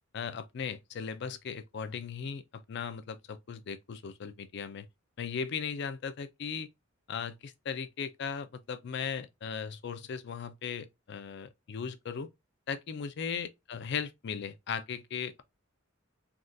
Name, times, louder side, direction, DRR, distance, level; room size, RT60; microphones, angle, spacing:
voice 1, 0.1-4.9 5.2-6.7 7.1-12.3 12.7-15.4, left 6 dB, 60° left, 0.4 m, -37 dB
3.5 x 2.3 x 2.6 m
head